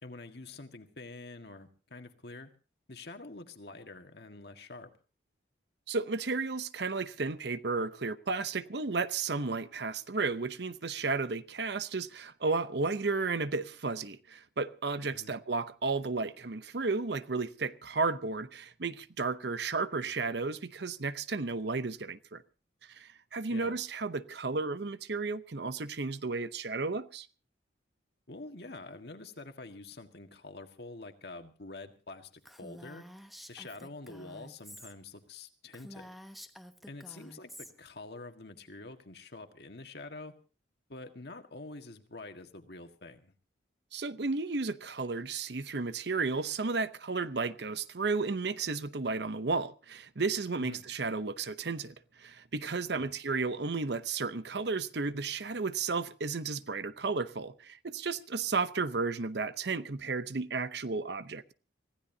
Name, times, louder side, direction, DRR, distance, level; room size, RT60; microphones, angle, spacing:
voice 1, 0.0-2.5 2.9-4.9 15.1-15.4 23.5-23.8 28.3-33.0 33.5-36.1 36.9-37.5 37.8-40.3 40.9-43.3 50.6-50.8 52.9-53.1, left 2 dB, 60° left, 1.8 m, -46 dB
voice 2, 5.9-22.4 22.9-27.3 43.9-61.5, right 4 dB, 60° right, 0.8 m, -33 dB
Female speech woman speaking, 32.4-34.9 35.3-35.4 35.7-37.7, equal, ahead, 1.0 m, -50 dB
25.0 x 16.0 x 2.8 m
head